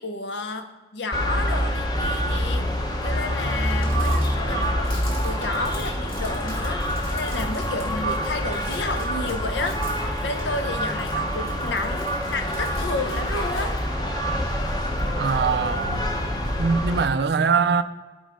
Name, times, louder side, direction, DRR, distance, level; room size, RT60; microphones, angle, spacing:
voice 1, 0.0-2.7 3.0-4.7 5.2-13.8, left 3 dB, 80° left, 0.7 m, -31 dB
sound 1, 1.1-17.1, equal, 25° left, 0.7 m, -26 dB
Crumpling crinkling, 3.6-13.9, left 2 dB, 55° left, 2.4 m, -46 dB
voice 2, 15.2-16.1 16.6-17.8, right 5 dB, 65° right, 0.4 m, -22 dB
5.5 x 5.3 x 5.0 m
head